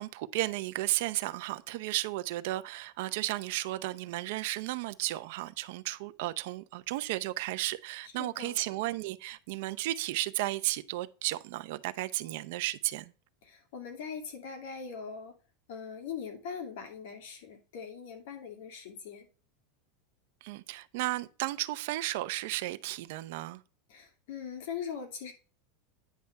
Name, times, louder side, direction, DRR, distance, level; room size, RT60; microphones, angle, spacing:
voice 1, 0.0-13.1 20.4-23.6, right 17 dB, 65° right, 0.6 m, -34 dB
voice 2, 8.2-8.6 13.4-15.3 15.7-19.3 23.9-25.3, left 6 dB, 70° left, 2.5 m, -41 dB
9.3 x 3.4 x 6.5 m
supercardioid pair, 150°, 0 cm